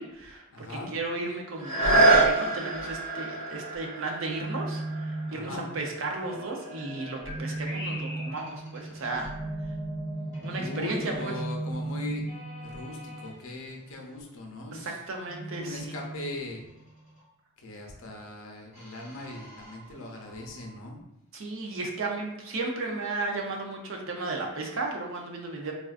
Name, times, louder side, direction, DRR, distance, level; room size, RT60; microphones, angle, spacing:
voice 1, 0.0-9.3 10.4-11.3 14.7-16.0 21.3-25.7, right 3 dB, 60° right, 1 dB, 0.5 m, -34 dB
voice 2, 0.5-0.9 5.3-5.7 10.6-12.2 12.6-15.0 15.6-16.6 17.6-21.0, left 2 dB, 70° left, 1 dB, 0.6 m, -39 dB
sound 1, 1.6-7.2 7.8-7.9, right 2 dB, 35° right, 1.4 m, -26 dB
sound 2, 1.8-2.4 2.7-3.1 3.7-3.8 6.2-8.5 9.1-10.1, equal, 10° left, 0.7 m, -40 dB
sound 3, 4.3-13.3 15.3-17.2 18.7-20.7, right 1 dB, 15° right, 1.5 m, -37 dB
3.5 x 2.4 x 2.4 m, 0.88 s
head